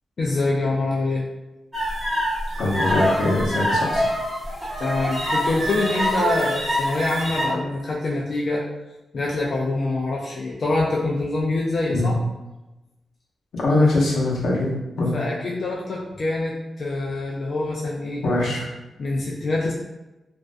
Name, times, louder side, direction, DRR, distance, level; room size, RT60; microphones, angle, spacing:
voice 1, 0.2-1.2 4.8-8.6 9.1-12.2 13.8-13.9 15.1-18.2 19.0-19.7, left 2 dB, 55° left, -4 dB, 0.3 m, -25 dB
sound 1, 1.7-7.5, equal, 15° right, 0.8 m, -24 dB
voice 2, 2.6-4.0 11.9-12.1 13.5-15.1 18.2-18.7, left 2 dB, 85° left, -4 dB, 0.7 m, -22 dB
2.4 x 2.1 x 2.4 m, 1.0 s
wide cardioid pair, 115°, 0 cm